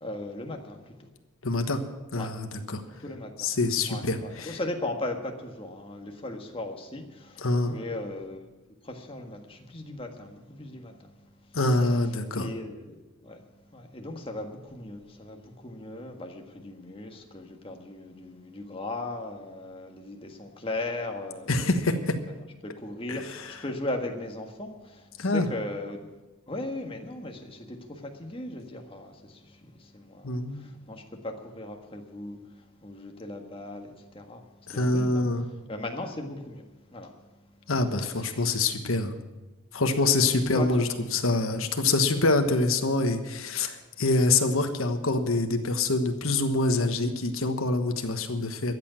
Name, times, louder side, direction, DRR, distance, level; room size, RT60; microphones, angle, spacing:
voice 1, 0.0-1.1 2.1-2.3 3.0-3.5 3.8-8.5 8.8-10.9 11.6-13.4 13.7-26.1 26.5-32.4 32.8-34.4 34.7-36.6 36.9-37.1 38.0-38.6 40.1-40.9 42.2-42.4, left 2 dB, 25° left, 3 dB, 1.6 m, -38 dB
voice 2, 1.4-1.8 2.1-2.8 3.4-4.6 7.4-7.8 11.5-12.5 21.5-22.2 23.1-23.5 25.2-25.5 30.2-30.6 34.7-35.5 37.7-39.2 39.7-48.7, left 2 dB, 80° left, 6 dB, 1.3 m, -25 dB
13.5 x 8.2 x 9.1 m, 1.1 s
head